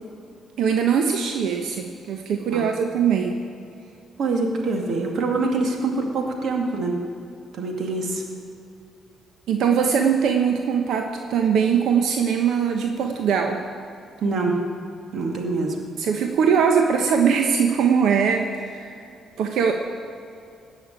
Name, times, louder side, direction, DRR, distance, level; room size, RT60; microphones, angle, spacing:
voice 1, 0.6-3.4 9.5-13.6 16.0-19.0 19.4-19.7, right 7 dB, 80° right, 4 dB, 1.0 m, -21 dB
voice 2, 4.2-7.0 7.5-8.2 14.2-14.6 15.1-15.8, right 3 dB, 60° right, 2 dB, 2.3 m, -25 dB
17.0 x 6.4 x 8.9 m, 2.5 s
cardioid pair, 90°, 0 cm